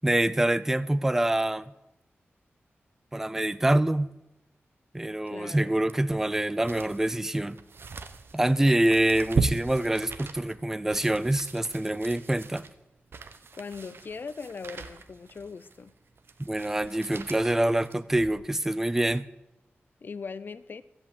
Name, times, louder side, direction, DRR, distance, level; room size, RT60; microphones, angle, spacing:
voice 1, 0.0-1.7 3.1-4.1 4.9-7.6 8.3-12.6 16.4-19.3, right 1 dB, 10° right, 0.4 m, -25 dB
voice 2, 5.3-5.7 13.5-15.9 20.0-20.8, left 5 dB, 50° left, 0.6 m, -40 dB
sound 1, 5.9-18.5 19.0-19.1, right 4 dB, 65° right, 0.9 m, -38 dB
13.5 x 8.1 x 8.4 m
wide cardioid pair, 160°, 4 cm